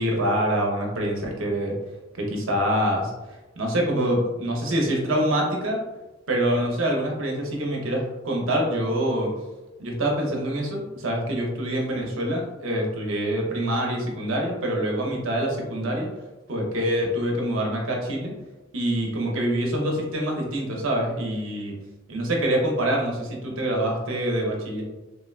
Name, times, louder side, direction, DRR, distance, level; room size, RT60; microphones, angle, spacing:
voice 1, 0.0-1.8 2.1-5.8 6.3-9.3 9.8-16.1 16.5-18.3 18.7-21.7 22.1-24.8, right 1 dB, 80° right, 0 dB, 0.7 m, -25 dB
3.5 x 2.2 x 2.4 m, 1.1 s
head